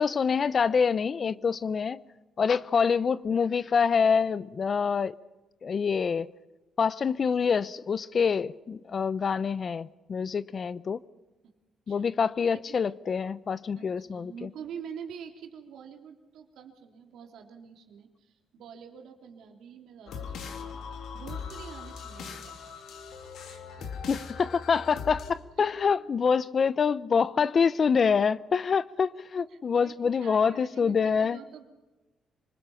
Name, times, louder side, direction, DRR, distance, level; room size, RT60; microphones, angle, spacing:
voice 1, 0.0-2.0 2.4-5.1 5.6-6.3 6.8-11.0 11.9-14.3 24.1-31.4, left 6 dB, 45° left, 0.7 m, -26 dB
voice 2, 13.8-22.7 23.5-23.9 24.9-25.0 25.6-25.7 29.4-31.6, right 7 dB, 80° right, 3.2 m, -46 dB
sound 1, 20.1-25.3, left 6 dB, 75° left, 2.7 m, -40 dB
26.5 x 20.0 x 5.8 m
cardioid pair, 90°, 0 cm